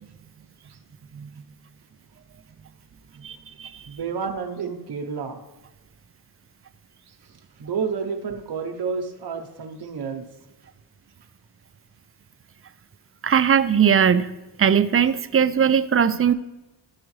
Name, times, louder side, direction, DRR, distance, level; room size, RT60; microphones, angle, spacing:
voice 1, 3.2-3.7 13.2-14.3 14.6-16.3, right 8 dB, 35° right, 12 dB, 0.4 m, -19 dB
voice 2, 3.8-5.4 7.6-10.2, right 5 dB, 60° right, 4 dB, 0.9 m, -30 dB
13.0 x 4.9 x 3.1 m, 1.1 s
cardioid pair, 65°, 44 cm